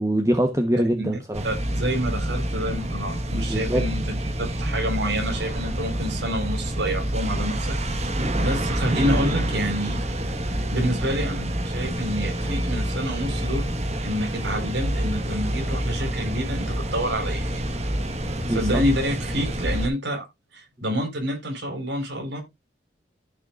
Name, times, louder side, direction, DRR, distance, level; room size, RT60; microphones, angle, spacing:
voice 1, 0.0-1.4 3.3-3.8 18.4-18.8, right 1 dB, 15° right, 1.1 m, -23 dB
sound 1, 1.3-19.9, right 1 dB, 35° right, 1.5 m, -27 dB
voice 2, 1.4-4.0 4.4-7.8 8.4-10.0 10.7-13.7 14.0-17.6 18.5-20.2 20.5-22.4, equal, 70° right, 4.6 m, -28 dB
14.0 x 6.6 x 2.5 m
head